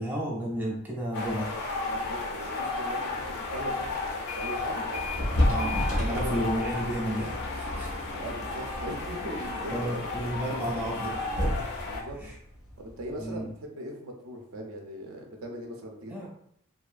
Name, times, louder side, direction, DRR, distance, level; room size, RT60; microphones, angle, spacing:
voice 1, 0.0-1.5 5.5-8.0 9.7-11.4 12.2-12.4 13.2-13.5 16.1-16.3, equal, 10° right, -4 dB, 0.5 m, -32 dB
sound 1, 1.1-12.0, left 3 dB, 50° left, 0.4 m, -34 dB
voice 2, 1.8-5.4 5.9-6.7 8.2-9.7 11.8-12.2 12.8-16.3, equal, 70° right, 2 dB, 0.5 m, -40 dB
opening tailgate, 4.1-4.6 4.9-13.4, left 1 dB, 85° left, 1.0 m, -33 dB
2.7 x 2.2 x 2.4 m, 0.69 s
head